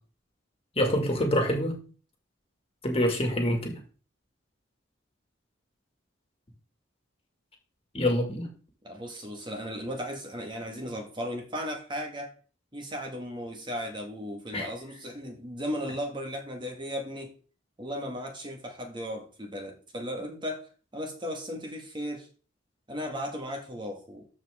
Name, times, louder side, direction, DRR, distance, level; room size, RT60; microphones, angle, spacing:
voice 1, 0.8-1.9 2.8-3.8 7.9-8.5 14.5-14.7, left 1 dB, 30° left, 2.2 m, -26 dB
voice 2, 8.8-12.3 12.7-17.3 17.8-20.7 20.9-22.3 22.9-24.3, equal, 25° right, 1.8 m, -36 dB
13.5 x 5.1 x 3.7 m
head